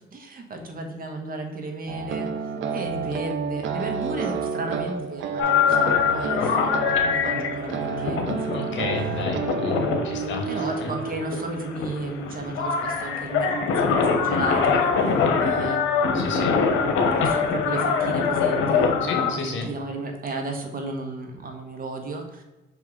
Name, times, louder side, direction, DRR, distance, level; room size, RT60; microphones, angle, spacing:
voice 1, 0.1-8.9 10.1-22.4, right 2 dB, 45° right, 3 dB, 1.3 m, -34 dB
sound 1, 1.9-11.6, right 5 dB, 70° right, 0.7 m, -30 dB
sound 2, 5.4-19.3, left 5 dB, 90° left, 0.9 m, -23 dB
voice 2, 8.5-10.9 16.1-16.6 19.0-19.7, left 4 dB, 70° left, 3 dB, 1.3 m, -32 dB
sound 3, 12.0-17.5, left 2 dB, 35° left, 1.1 m, -40 dB
5.6 x 4.6 x 3.8 m, 1.1 s
cardioid pair, 90°, 20 cm